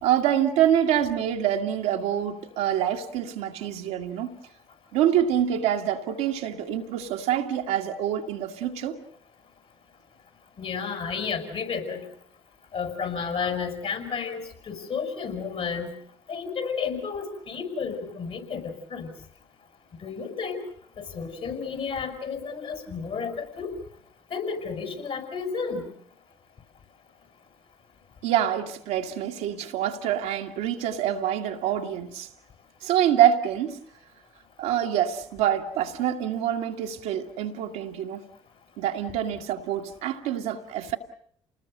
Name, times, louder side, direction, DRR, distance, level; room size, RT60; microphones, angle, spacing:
voice 1, 0.0-4.4 4.9-9.0 28.2-32.3 32.8-33.8 34.6-38.2 38.8-41.0, right 10 dB, 80° right, 1.8 m, -26 dB
voice 2, 10.6-12.0 12.7-15.9 16.3-19.1 20.0-20.6 21.0-23.7 24.3-25.9, left 5 dB, 60° left, 6.1 m, -32 dB
29.0 x 20.0 x 6.7 m
hypercardioid pair, 55°, 12 cm